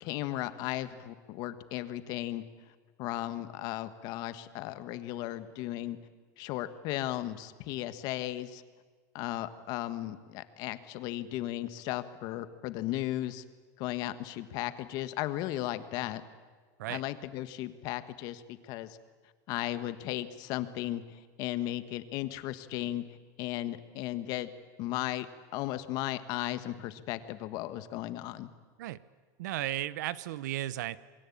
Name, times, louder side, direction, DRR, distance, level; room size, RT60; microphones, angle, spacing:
voice 1, 0.0-2.4 3.0-6.0 6.4-8.6 9.1-13.4 13.8-16.2 16.9-19.0 19.5-23.0 23.4-24.5 24.8-25.3 25.5-28.5, left 14 dB, 45° left, 12 dB, 1.4 m, -35 dB
voice 2, 29.4-31.0, right 14 dB, 90° right, 18 dB, 1.0 m, -35 dB
28.0 x 21.5 x 8.7 m, 1.4 s
supercardioid pair, 165°, 9 cm